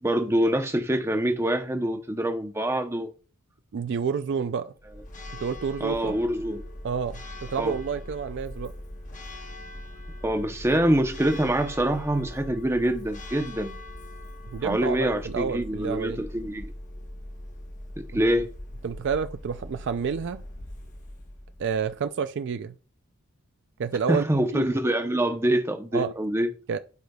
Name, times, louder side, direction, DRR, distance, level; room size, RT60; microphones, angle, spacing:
voice 1, 0.0-3.1 5.8-6.6 7.6-7.8 10.2-13.8 14.6-16.7 18.0-18.5 24.1-26.5, right 1 dB, 10° right, 0.7 m, -25 dB
voice 2, 3.7-4.7 5.3-6.2 6.8-8.7 14.5-16.2 18.1-18.2 18.8-20.4 21.6-22.8 23.8-24.2 24.5-24.7 25.9-26.1 26.7-26.8, right 6 dB, 55° right, 0.3 m, -29 dB
Church bell, 4.8-22.1, left 1 dB, 35° left, 1.0 m, -41 dB
11.5 x 5.0 x 2.3 m
head